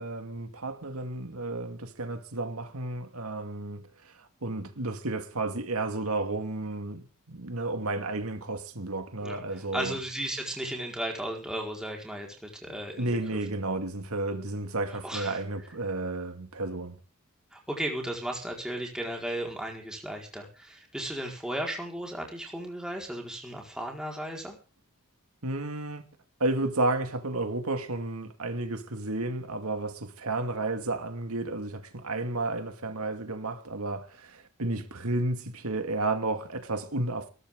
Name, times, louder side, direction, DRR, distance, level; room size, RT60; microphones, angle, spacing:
voice 1, 0.0-10.0 13.0-17.0 25.4-26.0 26.4-37.3, right 2 dB, 80° right, 2.3 m, -32 dB
voice 2, 9.7-13.4 14.9-15.4 17.5-24.6, right 1 dB, 5° right, 4.7 m, -35 dB
20.5 x 13.0 x 3.8 m
head